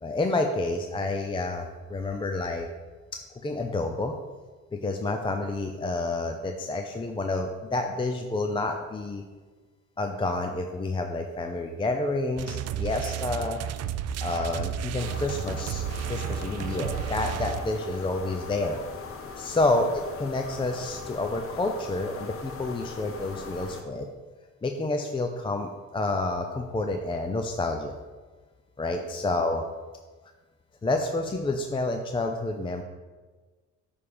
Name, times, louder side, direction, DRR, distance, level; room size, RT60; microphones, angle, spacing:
voice 1, 0.0-2.7 3.1-4.2 4.7-9.2 10.0-13.6 14.2-18.8 19.4-24.1 24.6-28.0 28.8-29.6 30.8-32.8, left 2 dB, 15° left, 4 dB, 0.5 m, -29 dB
sound 1, 12.4-17.9, right 9 dB, 55° right, 0.4 m, -32 dB
sound 2, 15.0-23.8, left 4 dB, 45° left, 0.9 m, -40 dB
8.3 x 3.5 x 5.2 m, 1.3 s
cardioid pair, 90°, 30 cm